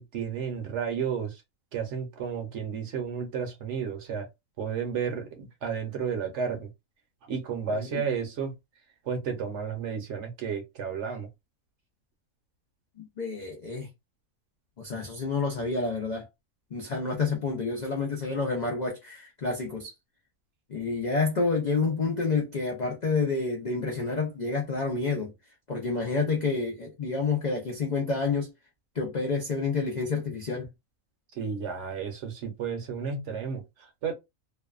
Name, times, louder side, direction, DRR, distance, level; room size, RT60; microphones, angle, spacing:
voice 1, 0.0-1.4 1.7-4.3 4.6-6.7 7.3-8.5 9.1-11.3 31.4-34.1, right 6 dB, 60° right, 0.9 m, -32 dB
voice 2, 7.7-8.0 13.0-13.9 14.8-16.3 16.7-19.9 20.7-25.3 25.7-28.5 28.9-30.7, left 4 dB, 65° left, 0.4 m, -29 dB
2.6 x 2.1 x 2.3 m
omnidirectional pair, 1.5 m